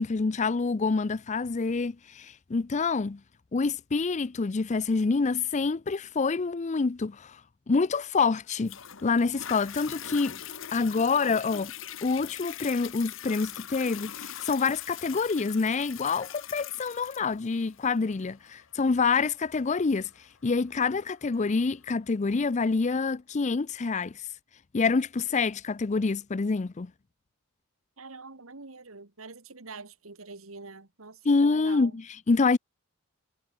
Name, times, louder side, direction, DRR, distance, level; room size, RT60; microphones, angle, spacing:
voice 1, 0.0-3.2 3.5-7.4 7.7-8.8 9.0-10.4 10.7-11.7 12.0-24.3 24.7-26.9 31.3-32.6, left 4 dB, 35° left, 0.5 m, -27 dB
Toilet flush, 8.7-21.7 22.3-22.4, left 10 dB, 65° left, 1.3 m, -42 dB
voice 2, 28.0-32.0, right 3 dB, 85° right, 2.0 m, -45 dB
head